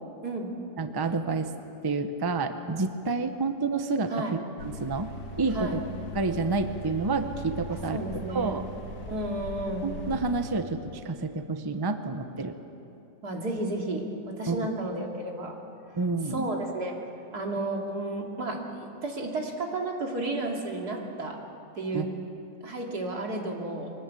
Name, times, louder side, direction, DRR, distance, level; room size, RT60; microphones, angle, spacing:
voice 1, 0.8-1.5 1.8-5.1 5.4-5.8 6.1-8.0 8.3-8.7 9.8-12.5 14.5-14.7 16.0-16.4 21.9-22.0, right 3 dB, 20° right, 8 dB, 0.8 m, -29 dB
sound 1, 4.6-10.5, left 1 dB, 80° left, 1.8 m, -40 dB
voice 2, 7.9-8.6 9.1-9.9 13.2-15.6 16.3-16.9 17.3-21.4 21.8-22.0 22.6-23.9, right 2 dB, 85° right, 0 dB, 3.2 m, -32 dB
23.5 x 18.5 x 8.4 m, 2.8 s
omnidirectional pair, 1.6 m